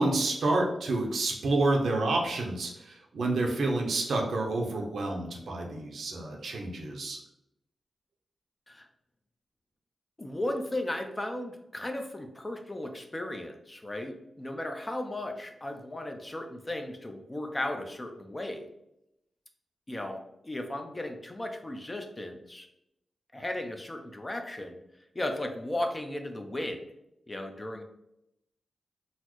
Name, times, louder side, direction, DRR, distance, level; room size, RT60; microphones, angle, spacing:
voice 1, 0.0-7.2, right 2 dB, 80° right, 1 dB, 0.6 m, -29 dB
voice 2, 10.2-18.7 19.9-22.7 23.3-24.8 25.1-26.8 27.3-27.8, left 1 dB, 25° left, 5 dB, 0.5 m, -35 dB
3.9 x 2.0 x 3.0 m, 0.83 s
cardioid pair, 45°, 0 cm